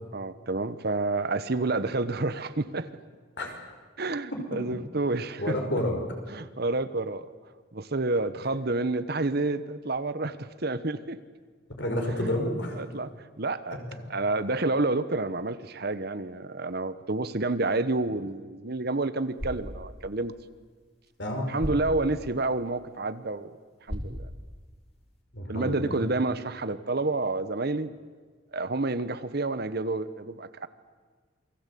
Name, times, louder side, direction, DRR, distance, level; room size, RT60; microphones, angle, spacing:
voice 1, 0.1-2.9 4.0-5.8 6.3-7.3 7.7-11.2 12.1-12.3 12.7-13.1 13.4-13.8 14.1-20.3 21.5-23.5 23.9-24.3 25.5-27.9 28.5-30.7, right 2 dB, 55° right, 13 dB, 1.1 m, -29 dB
voice 2, 5.4-6.0 11.8-12.8 21.2-21.5 25.3-25.9, left 1 dB, 60° left, 2 dB, 5.5 m, -29 dB
sound 1, 19.2-25.2, equal, 30° left, 3.7 m, -41 dB
28.0 x 21.5 x 8.5 m, 1.5 s
head